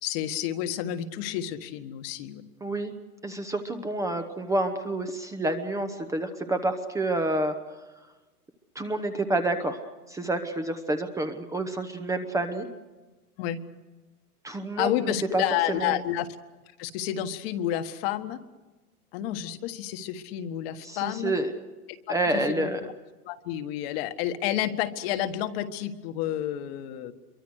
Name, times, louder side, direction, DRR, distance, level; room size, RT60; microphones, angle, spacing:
voice 1, 0.0-2.4 13.4-13.6 14.8-16.3 16.8-18.4 19.1-21.3 22.1-22.9 23.2-27.1, left 11 dB, 40° left, 9 dB, 1.6 m, -30 dB
voice 2, 2.6-2.9 3.2-7.5 8.7-9.8 10.1-12.7 14.4-15.4 15.7-16.0 20.8-21.5 22.1-22.8, right 2 dB, 5° right, 6 dB, 0.9 m, -28 dB
26.0 x 23.5 x 6.5 m, 1.2 s
hypercardioid pair, 140°, 45 cm